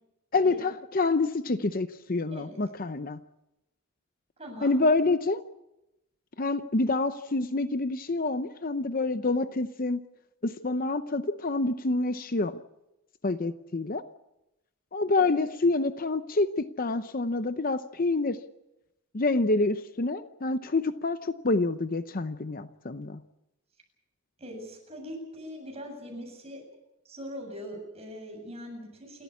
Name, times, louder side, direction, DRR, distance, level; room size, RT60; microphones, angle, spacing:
voice 1, 0.3-3.2 4.6-5.4 6.4-10.0 10.4-12.6 13.2-14.0 14.9-18.4 19.1-23.2, left 3 dB, 40° left, 11 dB, 0.7 m, -27 dB
voice 2, 4.4-4.8 15.2-15.3 24.4-26.6 27.0-29.2, equal, 30° right, 2 dB, 7.7 m, -41 dB
28.5 x 14.0 x 8.4 m, 0.92 s
head